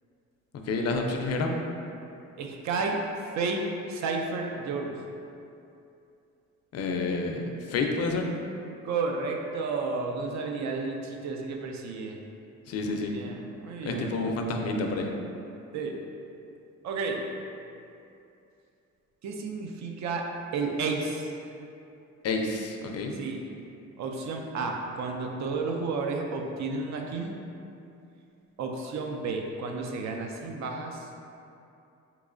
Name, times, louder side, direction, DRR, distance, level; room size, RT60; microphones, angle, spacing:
voice 1, 0.6-1.6 6.7-8.3 12.7-13.1 13.8-15.1 22.2-23.1, left 3 dB, 55° left, 2 dB, 0.4 m, -29 dB
voice 2, 2.4-3.0 3.3-5.0 8.8-12.2 12.9-14.1 15.7-16.0 16.8-17.3 19.2-20.3 20.5-21.3 23.2-23.4 24.0-27.4 28.6-31.1, right 4 dB, 65° right, 2 dB, 0.5 m, -32 dB
3.6 x 3.0 x 2.5 m, 2.7 s
cardioid pair, 90°, 30 cm